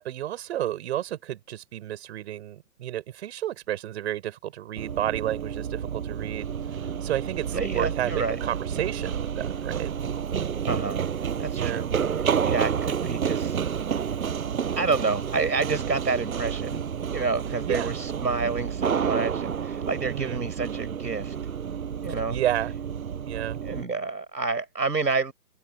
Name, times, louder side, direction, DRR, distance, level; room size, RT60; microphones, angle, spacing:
voice 1, 0.0-9.9 11.5-11.9 17.6-17.9 20.0-20.4 22.3-22.7 23.2-23.6, right 12 dB, 40° right, 7.1 m, -31 dB
Run, 4.8-23.8, right 7 dB, 60° right, 7.0 m, -30 dB
voice 2, 7.5-8.4 10.6-11.0 11.4-11.9 12.4-13.6 14.8-16.8 17.1-21.4 22.0-22.4 23.6-25.3, right 4 dB, 90° right, 5.8 m, -28 dB
hypercardioid pair, 145°, 48 cm